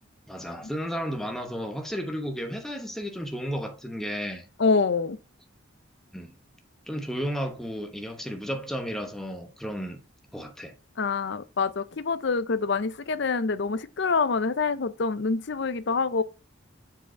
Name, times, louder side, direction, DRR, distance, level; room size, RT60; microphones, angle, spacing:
voice 1, 0.3-4.4 6.1-6.3 6.9-10.0 10.3-10.7, equal, ahead, 1.0 m, -33 dB
voice 2, 4.6-5.2 11.0-16.2, left 4 dB, 60° left, 0.6 m, -26 dB
7.1 x 4.9 x 4.5 m
head